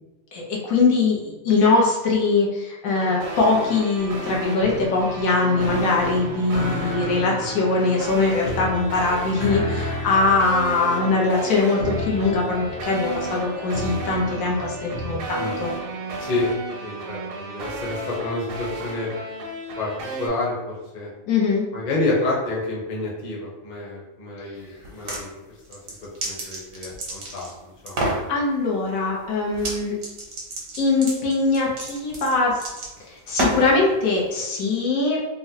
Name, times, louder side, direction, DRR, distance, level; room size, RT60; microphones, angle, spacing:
voice 1, 0.3-15.7 21.3-21.6 28.3-29.9 30.8-32.6 33.1-35.2, left 3 dB, 90° left, -2 dB, 1.2 m, -22 dB
sound 1, 2.9-20.3, right 1 dB, 60° right, 0.6 m, -33 dB
sound 2, 4.0-15.2, equal, 65° left, 1.3 m, -33 dB
voice 2, 16.8-19.1 19.8-19.9 20.2-21.1 21.7-25.3 25.7-25.8 26.2-27.5 27.8-28.1, left 2 dB, 40° left, -4 dB, 0.8 m, -28 dB
sound 3, 24.8-25.2 25.7-27.5 27.9-28.2 29.5-29.8 30.0-33.8, right 2 dB, 90° right, 1.3 m, -29 dB
3.7 x 2.0 x 2.7 m, 1.1 s
omnidirectional pair, 1.4 m